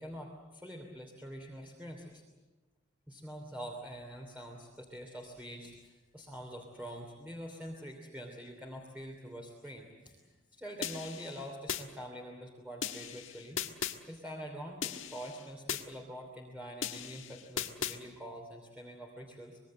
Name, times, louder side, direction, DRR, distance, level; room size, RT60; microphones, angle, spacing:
voice 1, 0.0-2.2 3.1-10.2 10.5-13.6 14.1-19.6, equal, 5° right, 0 dB, 3.0 m, -45 dB
sound 1, 10.8-11.8 12.8-14.0 14.8-15.8 16.8-18.0, left 8 dB, 70° left, 1.5 m, -38 dB
25.5 x 22.0 x 7.7 m, 1.2 s
head